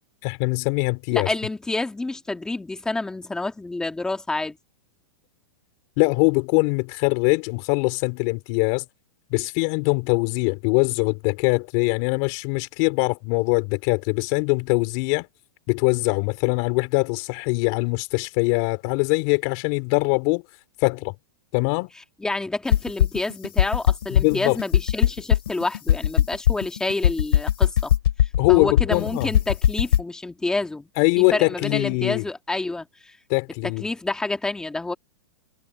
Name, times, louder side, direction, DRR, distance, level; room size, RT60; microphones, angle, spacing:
voice 1, 0.2-1.3 6.0-8.8 9.3-15.3 15.7-20.4 20.8-21.1 21.5-21.9 24.1-24.6 28.4-29.3 31.0-32.2 33.3-33.8, left 30 dB, 40° left, 4.4 m, -22 dB
voice 2, 1.1-4.6 22.2-27.9 28.5-30.9 31.2-33.1 33.6-34.9, left 2 dB, 5° left, 1.8 m, -28 dB
sound 1, 22.7-30.0, left 11 dB, 85° left, 2.6 m, -19 dB
supercardioid pair, 155°, 12 cm